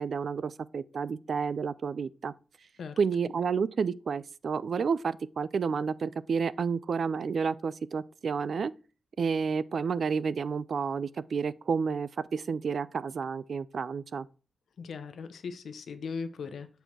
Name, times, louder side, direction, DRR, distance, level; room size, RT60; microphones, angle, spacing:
voice 1, 0.0-2.3 3.0-8.7 9.2-14.3, right 5 dB, 60° right, 0.3 m, -30 dB
voice 2, 14.8-16.7, left 5 dB, 90° left, 0.8 m, -38 dB
7.9 x 4.6 x 4.2 m
wide cardioid pair, 150°, 0 cm